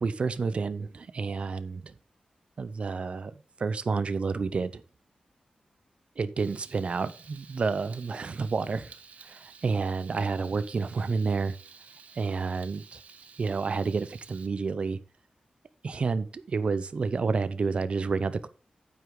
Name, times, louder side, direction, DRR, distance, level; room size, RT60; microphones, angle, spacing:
voice 1, 0.0-1.9 2.6-3.3 3.6-4.8 6.2-8.9 9.2-11.6 12.2-13.0 13.4-15.0 15.8-18.5, right 4 dB, 50° right, 0.7 m, -29 dB
Frying (food), 6.4-14.5, right 5 dB, 75° right, 1.0 m, -52 dB
9.7 x 8.1 x 3.8 m
wide cardioid pair, 155°, 3 cm